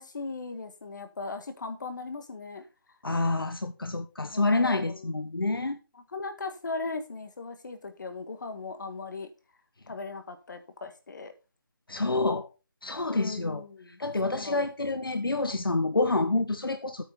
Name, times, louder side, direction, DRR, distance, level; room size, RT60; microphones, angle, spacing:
voice 1, 0.0-2.6 4.3-5.1 6.0-9.3 9.9-11.3 13.1-15.0, left 3 dB, 55° left, 1.9 m, -38 dB
voice 2, 3.0-5.8 11.9-12.5 12.8-13.6 14.0-17.0, left 2 dB, 85° left, 1.2 m, -28 dB
9.0 x 5.6 x 5.4 m
figure-of-eight pair, 155°, 12 cm